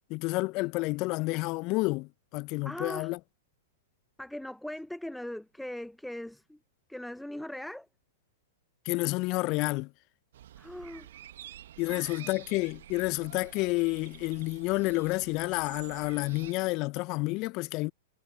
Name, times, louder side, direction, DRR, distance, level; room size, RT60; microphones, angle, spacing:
voice 1, 0.1-3.2 8.9-9.9 11.8-17.9, left 24 dB, 40° left, 0.6 m, -30 dB
voice 2, 2.6-3.1 4.2-6.6 6.9-7.9 10.6-11.1 11.9-12.1, left 1 dB, ahead, 0.8 m, -40 dB
sound 1, 10.3-16.5, right 12 dB, 60° right, 1.8 m, -49 dB
figure-of-eight pair, 100°, 0 cm